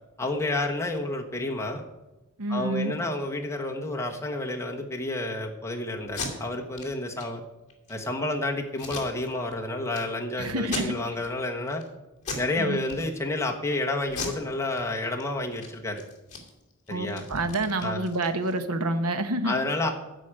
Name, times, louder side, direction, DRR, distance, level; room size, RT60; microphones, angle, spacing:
voice 1, 0.2-1.8 2.5-7.4 7.9-11.8 12.3-16.0 16.9-17.2 17.8-18.0 19.4-19.9, left 2 dB, 15° left, 0 dB, 1.3 m, -30 dB
voice 2, 2.4-2.9 10.4-11.0 12.6-12.8 16.9-19.6, right 2 dB, 80° right, 9 dB, 1.1 m, -28 dB
Packing tape duct tape, 6.0-6.3 6.7-6.9 7.2-7.3 7.7-8.1 8.8-9.5 9.9-10.0 10.6-11.3 11.7-11.9 12.2-12.5 12.8-13.5 14.1-15.2 15.5-15.7 16.0-18.6, left 3 dB, 35° left, 2.7 m, -37 dB
13.0 x 5.1 x 8.9 m, 1.0 s
head